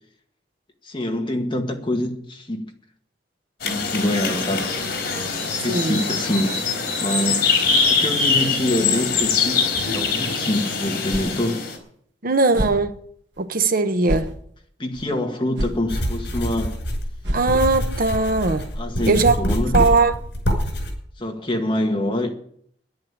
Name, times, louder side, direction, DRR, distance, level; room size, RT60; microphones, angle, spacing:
voice 1, 0.8-2.7 3.6-4.7 5.6-6.6 7.0-7.5 7.9-11.6 14.8-16.8 18.8-19.8 21.2-22.3, left 1 dB, 30° left, 2.0 m, -25 dB
sound 1, 3.6-11.8, left 5 dB, 60° left, 4.1 m, -23 dB
voice 2, 5.7-6.0 12.2-13.0 13.4-14.4 17.3-18.7 19.1-19.4 19.7-20.2, right 3 dB, 55° right, 1.0 m, -19 dB
sound 2, 11.1-11.4 11.8-11.9 12.5-12.8 13.4-13.5 14.0-14.3 14.9-15.0 15.6-15.8 16.2-16.3 16.6-16.7 17.2-17.8, equal, 90° right, 1.7 m, -27 dB
sound 3, 15.9-20.9, equal, 75° left, 5.8 m, -25 dB
10.5 x 10.5 x 8.8 m
head